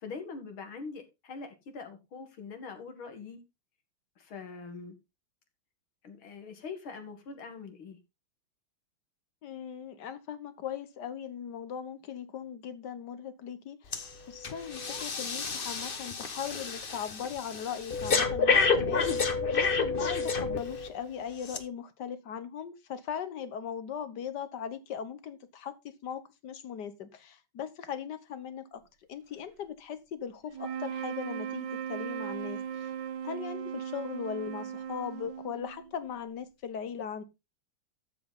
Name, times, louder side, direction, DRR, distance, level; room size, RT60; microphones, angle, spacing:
voice 1, 0.0-3.4 4.2-5.0 6.0-8.0, left 4 dB, 90° left, 2.9 m, -43 dB
voice 2, 9.4-25.7 26.0-28.8 29.1-32.9 33.2-37.2, left 8 dB, 60° left, 1.8 m, -39 dB
Breathing, 13.9-14.1 14.4-20.9 21.4-21.6, left 4 dB, 35° left, 1.0 m, -29 dB
sound 1, 30.5-36.0, right 8 dB, 65° right, 1.6 m, -37 dB
12.5 x 7.7 x 4.0 m
omnidirectional pair, 2.2 m